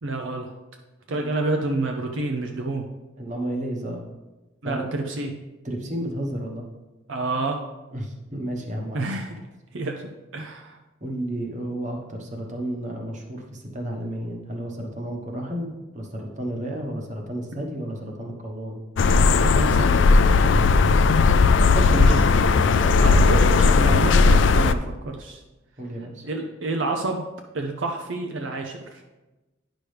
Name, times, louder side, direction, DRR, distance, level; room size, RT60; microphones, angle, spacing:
voice 1, 0.0-0.5 1.1-2.8 4.6-5.3 7.1-7.6 8.9-9.4 9.7-10.8 19.4-20.1 21.9-22.2 23.0-25.4 26.2-27.2 27.5-29.0, right 2 dB, 70° right, 3 dB, 0.6 m, -28 dB
voice 2, 3.2-4.1 4.6-4.9 5.6-6.6 7.9-9.1 11.0-18.8 20.4-20.8 21.6-22.2 22.7-22.9 25.8-26.3, right 1 dB, 40° right, 1 dB, 1.2 m, -32 dB
sound 1, 19.0-24.7, left 4 dB, 65° left, 0.4 m, -17 dB
9.8 x 6.1 x 3.4 m, 1.1 s
head